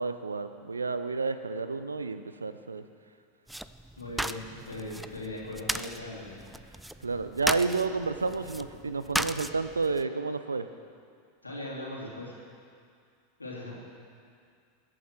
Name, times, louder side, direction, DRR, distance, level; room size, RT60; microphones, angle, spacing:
voice 1, 0.0-2.8 7.0-10.7, right 4 dB, 80° right, 11 dB, 0.6 m, -30 dB
sound 1, 3.5-10.0, right 1 dB, 5° right, 0.4 m, -36 dB
voice 2, 4.0-6.4 11.4-12.3 13.4-13.8, left 1 dB, 90° left, -4 dB, 3.2 m, -39 dB
21.0 x 8.7 x 4.6 m, 2.3 s
figure-of-eight pair, 85°, 0 cm